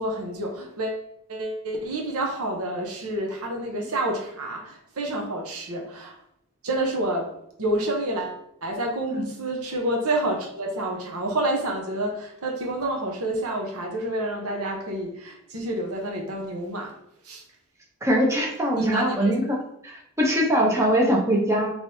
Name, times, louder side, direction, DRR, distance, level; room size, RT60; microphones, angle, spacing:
voice 1, 0.0-6.2 6.6-17.0 17.2-17.4 18.7-19.3, right 1 dB, 85° right, 2 dB, 0.8 m, -29 dB
voice 2, 18.0-19.6 19.8-21.7, equal, 15° right, -2 dB, 0.7 m, -22 dB
3.2 x 3.1 x 2.7 m, 0.75 s
head